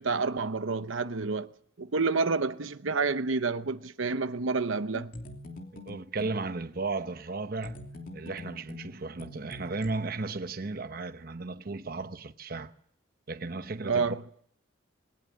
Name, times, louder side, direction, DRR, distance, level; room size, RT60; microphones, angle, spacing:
voice 1, 0.0-1.5 1.8-5.1 13.8-14.2, right 4 dB, 85° right, 0.9 m, -29 dB
sound 1, 4.9-6.4 7.6-9.9, left 1 dB, 45° left, 3.0 m, -44 dB
voice 2, 5.9-7.8 8.1-12.7 13.3-14.2, right 3 dB, 50° right, 0.9 m, -35 dB
21.0 x 18.5 x 8.4 m
head